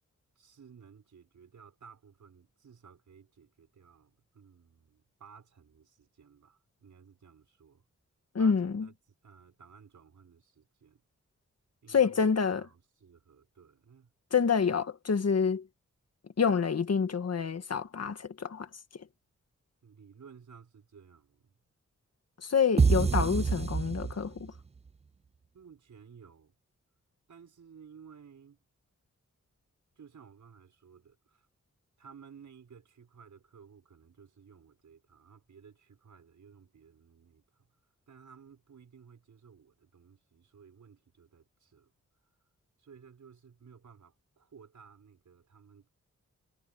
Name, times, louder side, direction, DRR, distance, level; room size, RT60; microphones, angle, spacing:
voice 1, 0.4-7.8 8.4-8.9 9.2-11.0 11.8-14.1 19.8-21.5 25.5-26.5 27.3-28.6 30.0-31.5 32.0-37.7 38.1-41.9 42.8-45.9, right 6 dB, 85° right, 6.1 m, -56 dB
voice 2, 8.4-8.9 11.9-12.6 14.3-15.7 16.4-18.7 18.9-19.1 22.4-24.5, left 6 dB, 60° left, 1.7 m, -27 dB
sound 1, 22.8-24.6, right 5 dB, 25° right, 0.4 m, -26 dB
wide cardioid pair, 100°, 29 cm